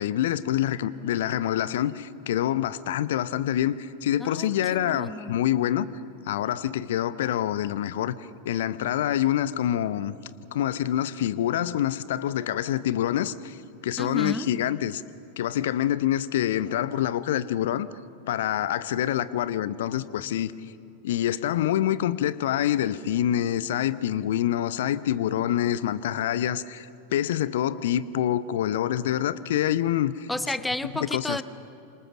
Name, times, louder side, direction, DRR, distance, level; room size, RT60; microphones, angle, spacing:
voice 1, 0.0-5.9 6.3-8.2 8.4-10.1 10.5-13.6 13.8-15.0 15.4-17.9 18.3-20.5 21.0-30.3 30.9-31.4, left 11 dB, 55° left, 16 dB, 0.8 m, -26 dB
voice 2, 4.2-5.3 14.0-14.5 30.3-31.4, left 2 dB, 5° left, 14 dB, 0.9 m, -32 dB
27.5 x 26.0 x 6.4 m, 2.6 s
figure-of-eight pair, 90°, 0 cm